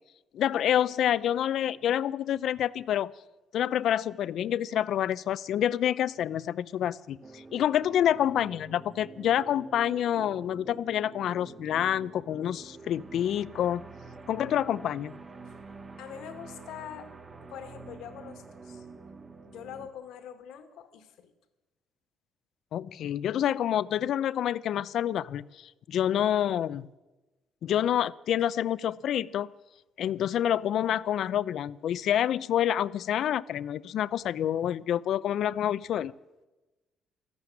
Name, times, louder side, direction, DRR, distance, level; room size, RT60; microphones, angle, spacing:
voice 1, 0.3-3.1 3.5-13.9 14.3-15.1 22.7-26.9 27.6-29.5 30.0-36.1, left 10 dB, 65° left, 18 dB, 0.6 m, -28 dB
sound 1, 7.2-19.9, right 3 dB, 30° right, 1.9 m, -47 dB
voice 2, 16.0-17.1 17.5-18.9 19.5-21.3, left 9 dB, 85° left, 8 dB, 2.0 m, -44 dB
19.5 x 14.5 x 9.8 m, 1.1 s
cardioid pair, 105°, 0 cm